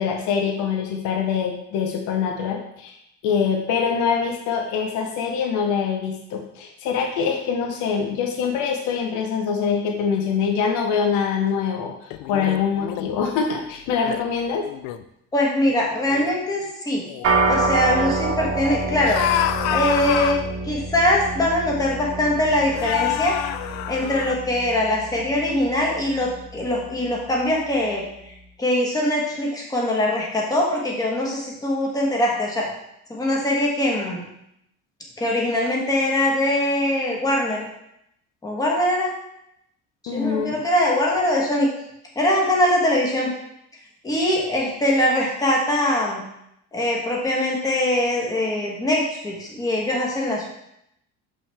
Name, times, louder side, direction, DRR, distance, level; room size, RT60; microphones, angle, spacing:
voice 1, 0.0-3.0 3.2-14.6 40.1-40.6, left 6 dB, 65° left, 2 dB, 0.9 m, -24 dB
sound 1, 12.1-13.1 13.9-14.2 14.6-15.0 15.7-15.8 16.1-16.4 17.0-17.3 19.0-20.5 21.5-21.6 22.7-24.3, left 11 dB, 85° left, 0.5 m, -27 dB
voice 2, 15.3-17.0 17.4-19.2 19.7-20.4 20.6-23.4 23.9-28.0 28.6-32.7 33.1-34.2 35.2-37.6 38.4-39.1 40.0-41.7 42.1-43.3 44.0-46.2 46.7-50.5, left 1 dB, 10° left, -2 dB, 1.3 m, -22 dB
sound 2, 17.2-26.8, right 2 dB, 45° right, 1.0 m, -27 dB
6.6 x 5.9 x 3.4 m, 0.80 s
cardioid pair, 170°, 32 cm